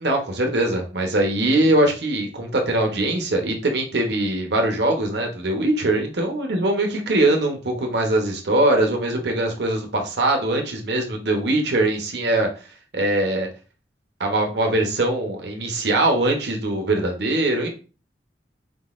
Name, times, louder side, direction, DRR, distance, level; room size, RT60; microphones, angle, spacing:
voice 1, 0.0-12.5 12.9-13.5 14.2-17.7, right 1 dB, 70° right, 3 dB, 0.9 m, -22 dB
4.3 x 3.8 x 2.5 m, 0.34 s
head